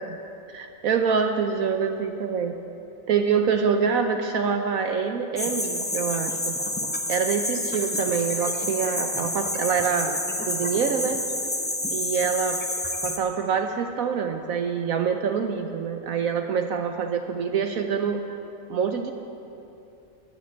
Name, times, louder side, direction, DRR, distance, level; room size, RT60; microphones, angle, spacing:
voice 1, 0.5-2.5 3.1-6.6 7.1-10.2 10.5-11.2 11.9-12.6 13.0-18.2 18.7-19.1, right 6 dB, 70° right, 5 dB, 1.2 m, -25 dB
sound 1, 5.4-13.2, left 1 dB, 10° left, 0.7 m, -29 dB
12.0 x 11.5 x 8.6 m, 2.8 s
omnidirectional pair, 1.6 m